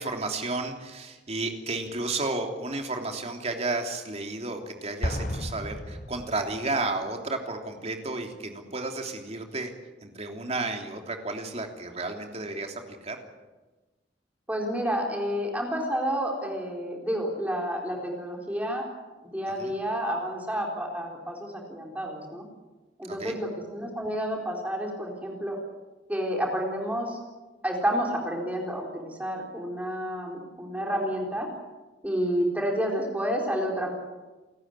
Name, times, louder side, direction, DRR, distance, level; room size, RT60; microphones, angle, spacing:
voice 1, 0.0-9.7 10.0-13.2 19.6-19.7 23.1-23.4, right 3 dB, 35° right, 3 dB, 3.3 m, -32 dB
Explosion, 5.0-6.8, equal, 45° left, 2.7 m, -33 dB
voice 2, 14.5-18.9 19.2-22.4 23.0-25.6 26.1-27.2 27.6-31.5 32.0-33.9, equal, 10° right, 0 dB, 4.3 m, -30 dB
29.0 x 14.0 x 9.9 m, 1.2 s
head